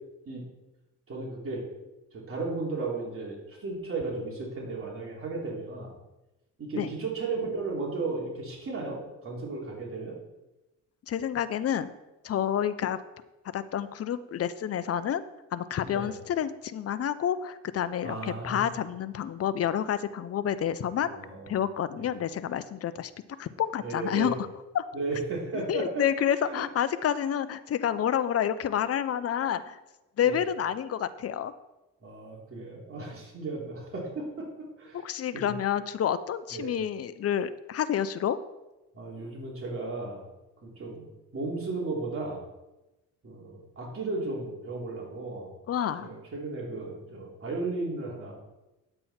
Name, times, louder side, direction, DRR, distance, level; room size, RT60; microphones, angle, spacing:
voice 1, 1.1-1.6 2.1-5.9 6.6-10.1 15.8-16.1 18.0-18.7 21.0-21.5 21.9-22.1 23.8-24.3 24.9-26.0 26.4-26.6 30.2-30.5 32.0-34.5 34.8-35.1 35.3-35.5 36.5-36.7 38.9-40.2 40.6-41.0 41.3-42.4 43.2-45.5 46.0-48.3, right 3 dB, 45° right, -3 dB, 3.3 m, -35 dB
voice 2, 11.1-11.9 12.2-13.0 13.5-15.2 15.5-21.2 21.5-23.1 23.4-24.3 24.7-24.8 25.5-29.8 30.2-31.5 34.9-38.4 45.7-46.1, left 9 dB, 50° left, 14 dB, 0.7 m, -29 dB
10.0 x 7.7 x 4.3 m, 1.0 s
cardioid pair, 90°, 30 cm